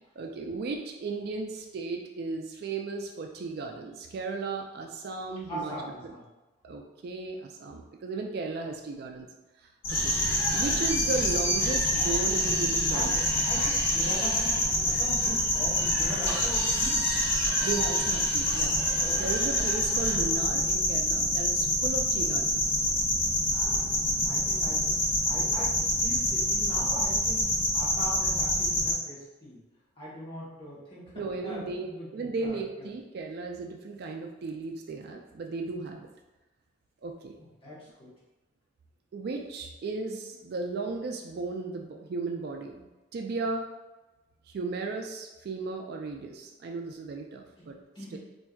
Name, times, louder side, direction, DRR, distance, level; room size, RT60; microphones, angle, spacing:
voice 1, 0.2-5.7 6.6-9.3 9.9-10.1 10.5-13.2 17.6-18.8 19.2-22.7 31.1-36.1 37.0-37.4 39.1-42.9 43.1-43.7 44.5-47.8 48.1-48.2, right 3 dB, 55° right, 3 dB, 0.3 m, -35 dB
voice 2, 5.5-6.2 12.9-14.6 14.9-17.1 18.9-19.2 21.2-21.7 24.2-29.6 30.0-32.9 37.4-38.1 47.6-48.2, equal, 30° left, -8 dB, 1.1 m, -40 dB
sound 1, 9.8-28.9, left 1 dB, 85° left, 0.9 m, -27 dB
sound 2, 9.9-20.1, equal, 50° left, 1.3 m, -36 dB
4.4 x 2.6 x 2.3 m, 1.1 s
head